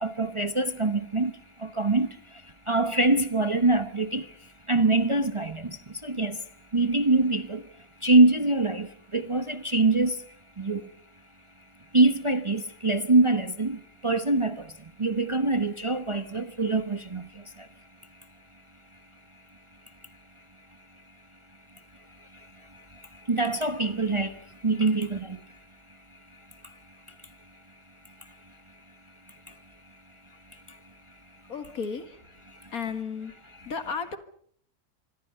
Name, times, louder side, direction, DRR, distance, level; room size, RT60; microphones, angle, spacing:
voice 1, 0.0-1.3 1.8-2.1 2.7-4.2 4.7-5.6 6.0-6.3 6.7-7.6 8.0-8.9 9.1-10.1 10.6-10.8 11.9-13.8 14.0-14.6 15.0-17.2 23.3-24.3 24.6-25.2, right 2 dB, 25° right, 0.9 m, -23 dB
voice 2, 31.5-32.1 32.7-33.3 33.7-34.2, left 5 dB, 70° left, 2.4 m, -33 dB
26.0 x 25.0 x 5.6 m
omnidirectional pair, 1.6 m